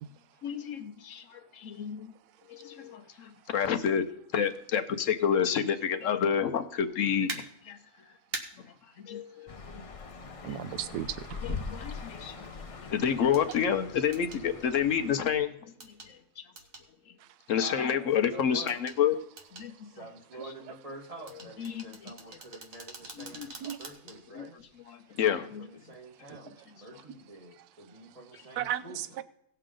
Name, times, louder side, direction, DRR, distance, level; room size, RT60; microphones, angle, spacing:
voice 1, 0.4-2.1 2.5-4.1 4.3-7.8 9.0-9.5 10.4-10.6 11.4-12.4 12.7-15.7 16.1-16.4 17.5-19.2 19.5-19.7 21.6-21.9 23.2-23.7 24.3-24.5 25.2-25.7, left 8 dB, 60° left, 1.0 m, -29 dB
sound 1, 7.3-7.4 8.3-8.4 10.4-10.5 13.3-13.6 14.1-14.4 15.8-16.1 16.6-16.9 18.7-19.0 19.4-19.7 21.3-24.2 24.6-24.7, right 3 dB, 60° right, 1.8 m, -42 dB
sound 2, 9.5-15.4, left 4 dB, 45° left, 0.4 m, -42 dB
voice 2, 10.4-11.6 23.6-23.8 26.3-26.4 28.6-29.2, right 11 dB, 80° right, 1.1 m, -35 dB
voice 3, 17.5-18.8 19.8-23.5 23.8-24.6 25.3-29.1, right 1 dB, 25° right, 1.6 m, -47 dB
18.0 x 6.7 x 3.7 m
omnidirectional pair, 1.7 m